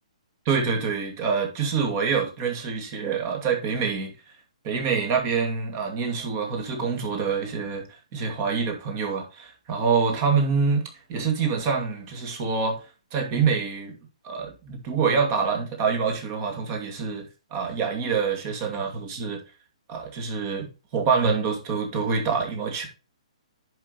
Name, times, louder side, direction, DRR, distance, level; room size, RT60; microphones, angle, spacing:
voice 1, 0.5-4.1 4.6-10.8 11.1-12.8 13.1-14.0 14.2-17.3 17.5-19.4 19.9-20.7 20.9-22.9, right 5 dB, 30° right, 2.4 m, -26 dB
10.5 x 5.5 x 3.1 m
hypercardioid pair, 160°, 4 cm